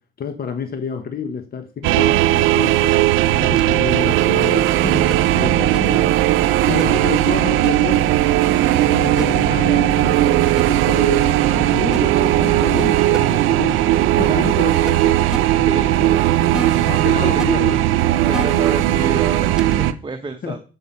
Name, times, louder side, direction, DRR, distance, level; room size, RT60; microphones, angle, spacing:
voice 1, 0.2-2.9 3.4-5.0 5.3-6.1 6.6-8.1 8.7-15.3 16.0-16.1 16.9-17.8 20.4-20.6, left 6 dB, 50° left, 1.0 m, -29 dB
sound 1, 1.8-19.9, right 14 dB, 90° right, 0.5 m, -17 dB
sound 2, 3.6-3.7 5.1-5.2 5.7-5.8 6.8-6.9 7.6-7.7 9.2-9.3 10.6-10.7 11.9-12.0 12.8-12.9 13.1-13.2 14.9-15.0 15.3-15.4 16.5-17.0 17.4-17.5 18.3-18.7 19.6-19.7, right 1 dB, 5° right, 0.3 m, -28 dB
sound 3, 4.2-12.2, left 1 dB, 70° left, 3.6 m, -37 dB
voice 2, 14.2-14.7 15.5-16.2 16.5-16.7 17.1-17.3 18.3-20.6, right 3 dB, 25° right, 0.9 m, -30 dB
7.3 x 5.5 x 5.4 m
cardioid pair, 90°, 20 cm